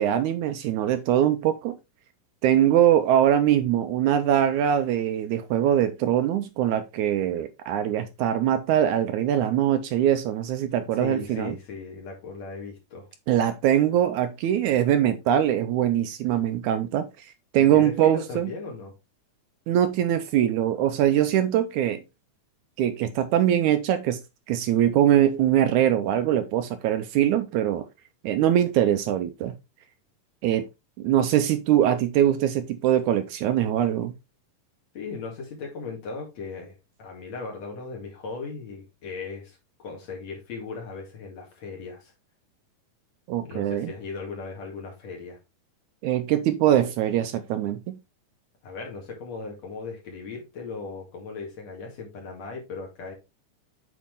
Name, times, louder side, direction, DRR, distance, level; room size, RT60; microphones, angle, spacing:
voice 1, 0.0-1.8 2.4-11.6 13.3-17.1 17.5-18.5 19.7-22.0 22.8-24.2 24.5-27.9 28.2-29.5 30.4-30.7 31.0-34.1 43.3-43.9 46.0-48.0, right 11 dB, 75° right, 1.9 m, -22 dB
voice 2, 11.0-13.1 17.6-18.9 34.9-42.1 43.4-45.4 48.6-53.1, left 4 dB, 55° left, 3.3 m, -37 dB
8.6 x 4.5 x 3.5 m
omnidirectional pair, 3.7 m